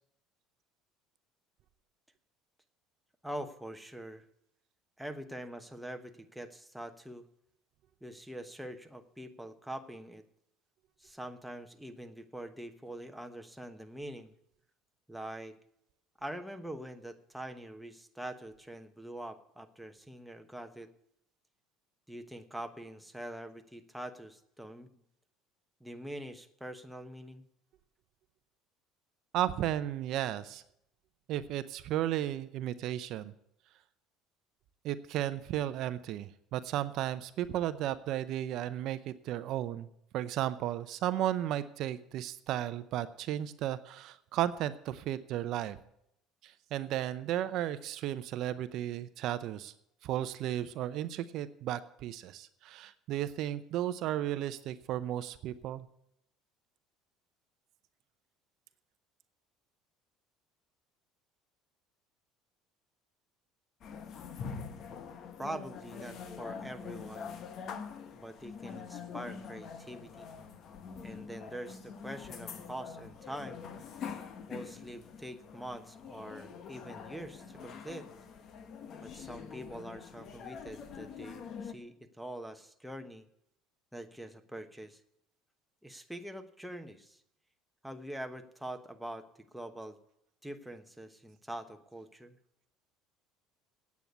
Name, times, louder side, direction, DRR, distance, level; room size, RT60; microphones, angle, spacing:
voice 1, 3.2-4.2 5.0-7.3 8.0-10.2 11.0-14.3 15.1-15.6 16.2-20.9 22.1-24.9 25.8-27.4 65.4-67.4 68.1-70.3 71.0-73.6 74.5-78.1 79.0-83.2 83.9-85.0 85.8-87.2 87.8-90.0 90.4-92.4, right 1 dB, ahead, 6 dB, 1.1 m, -44 dB
voice 2, 29.3-30.6 31.3-33.3 34.8-39.9 40.1-45.8 46.4-49.7 50.0-55.9, right 12 dB, 60° right, 13 dB, 0.6 m, -34 dB
sound 1, 63.8-81.7, left 6 dB, 50° left, 1.2 m, -45 dB
9.1 x 8.4 x 9.2 m, 0.76 s
supercardioid pair, 100°, 0 cm